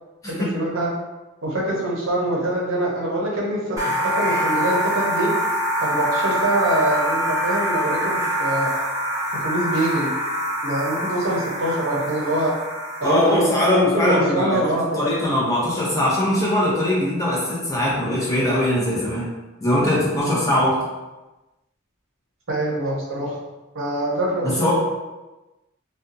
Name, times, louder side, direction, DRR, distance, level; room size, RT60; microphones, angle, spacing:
voice 1, 0.3-0.9 1.4-5.3 5.8-8.7 9.3-10.1 10.6-12.5 13.0-13.5 13.9-15.0 22.5-23.4 23.7-24.7, right 1 dB, 75° right, -3 dB, 0.7 m, -24 dB
sound 1, 3.8-13.5, equal, 15° right, 0.7 m, -25 dB
voice 2, 13.0-19.3 19.6-20.7 24.4-24.7, left 1 dB, 15° left, -7 dB, 0.6 m, -21 dB
2.5 x 2.2 x 2.6 m, 1.1 s
head